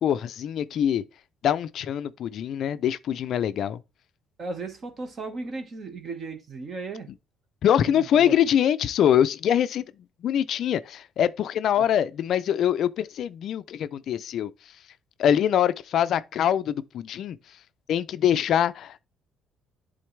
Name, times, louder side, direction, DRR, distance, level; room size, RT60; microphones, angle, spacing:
voice 1, 0.0-1.0 1.4-3.8 7.6-9.8 10.2-14.7 15.2-17.6 17.9-19.0, left 9 dB, 55° left, 0.4 m, -24 dB
voice 2, 4.4-7.1 7.8-8.4, right 3 dB, 35° right, 1.4 m, -36 dB
11.0 x 3.9 x 3.3 m
cardioid pair, 150°, 0 cm